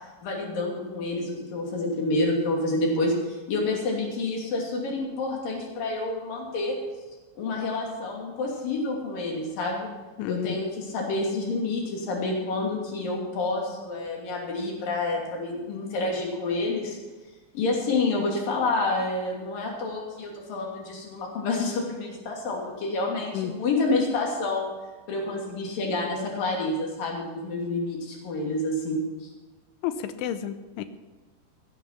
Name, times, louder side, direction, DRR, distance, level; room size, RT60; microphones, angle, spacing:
voice 1, 0.2-6.8 7.4-9.9 10.3-17.0 17.5-24.7 25.1-29.0, left 2 dB, 50° left, -1 dB, 4.1 m, -28 dB
voice 2, 10.2-10.6 23.3-23.5 29.8-30.8, left 10 dB, 85° left, 11 dB, 3.1 m, -31 dB
16.5 x 9.4 x 5.8 m, 1.2 s
omnidirectional pair, 5.6 m